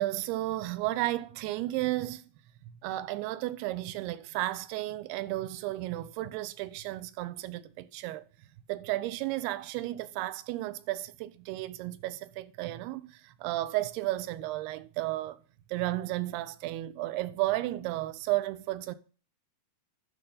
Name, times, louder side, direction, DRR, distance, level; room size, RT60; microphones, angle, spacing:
voice 1, 0.0-2.2 2.8-8.2 8.7-15.4 15.7-19.0, right 16 dB, 80° right, 2.6 m, -33 dB
11.0 x 6.7 x 3.9 m
omnidirectional pair, 4.7 m